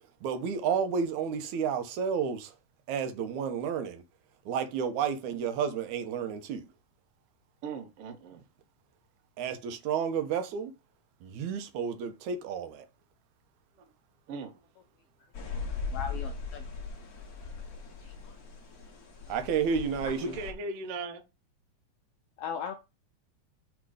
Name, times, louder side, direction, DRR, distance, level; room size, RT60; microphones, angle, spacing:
voice 1, 0.2-2.5 2.9-4.0 4.5-6.7 9.4-10.7 11.2-12.9 19.3-20.2, right 7 dB, 80° right, 2.4 m, -31 dB
voice 2, 7.6-8.4 14.3-14.6 20.2-21.2, right 3 dB, 65° right, 1.9 m, -38 dB
sound 1, 15.3-20.5, left 5 dB, 60° left, 0.9 m, -39 dB
voice 3, 15.7-16.7 18.0-18.3 22.4-22.7, left 7 dB, 80° left, 1.4 m, -38 dB
6.2 x 3.7 x 4.9 m
omnidirectional pair, 3.4 m